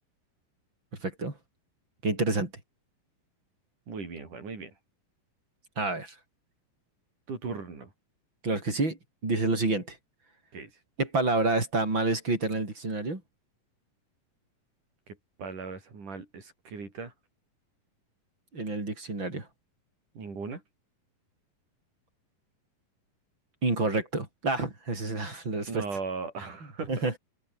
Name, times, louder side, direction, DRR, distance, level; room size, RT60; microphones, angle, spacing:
voice 1, 1.0-1.4 2.0-2.5 5.8-6.2 8.4-9.0 9.2-10.0 11.0-13.2 18.5-19.5 23.6-25.8 26.9-27.1, right 2 dB, 30° right, 6.3 m, -28 dB
voice 2, 3.9-4.8 7.3-7.9 10.5-10.8 15.1-17.1 20.2-20.6 25.7-26.9, right 4 dB, 60° right, 7.2 m, -38 dB
omnidirectional pair, 4.0 m